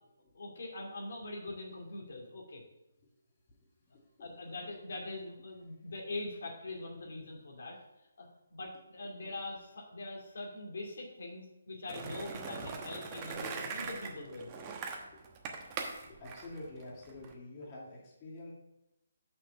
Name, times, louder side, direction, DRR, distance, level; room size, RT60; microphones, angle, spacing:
voice 1, 0.3-2.6 4.2-7.8 8.2-14.5, left 2 dB, 60° left, -1 dB, 2.5 m, -43 dB
voice 2, 3.9-4.3 12.6-12.8 15.1-15.2 15.9-18.5, left 2 dB, 30° left, -4 dB, 2.2 m, -48 dB
Skateboard, 11.9-17.3, right 5 dB, 25° right, 1.0 m, -41 dB
6.2 x 6.2 x 5.6 m, 0.90 s
figure-of-eight pair, 145°, 0 cm